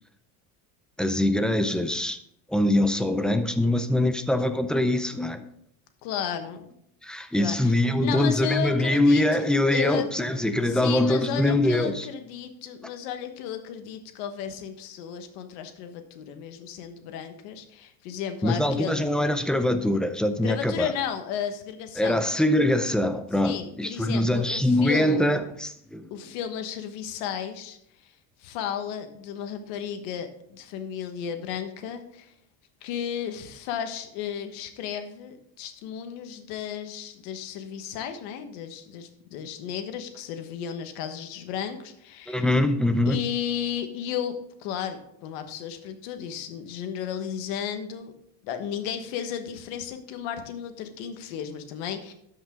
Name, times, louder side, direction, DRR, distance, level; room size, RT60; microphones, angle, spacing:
voice 1, 1.0-2.2 2.5-5.4 7.0-12.1 18.4-20.9 22.0-26.1 42.3-43.2, left 1 dB, ahead, 0.4 m, -23 dB
voice 2, 6.0-6.7 7.4-10.3 10.6-19.1 20.4-22.2 23.4-25.3 26.1-27.8 28.0-28.1 28.4-32.3 32.8-42.5 43.0-48.1 48.4-52.1, left 8 dB, 80° left, 1.3 m, -34 dB
12.5 x 5.5 x 3.7 m
cardioid pair, 140°, 37 cm